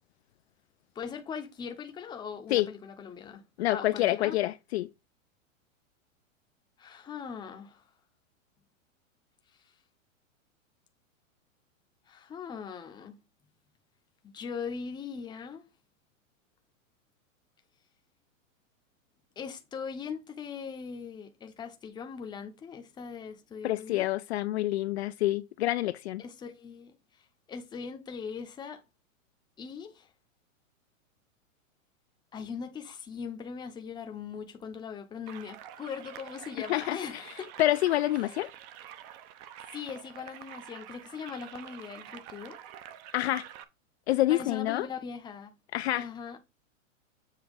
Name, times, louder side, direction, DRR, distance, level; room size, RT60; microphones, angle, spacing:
voice 1, 0.9-4.4 6.8-7.8 12.1-13.2 14.2-15.6 19.4-24.1 26.2-27.0 27.5-28.8 29.6-30.1 32.3-37.5 39.7-42.6 44.3-45.5 45.9-46.4, left 6 dB, 10° left, 0.7 m, -40 dB
voice 2, 3.6-4.9 23.6-26.2 36.7-37.2 37.6-38.5 43.1-43.4 44.1-44.9 45.7-46.1, left 15 dB, 55° left, 0.4 m, -27 dB
sound 1, 35.3-43.6, right 11 dB, 35° right, 0.6 m, -47 dB
7.3 x 2.9 x 5.1 m
hypercardioid pair, 140°, 41 cm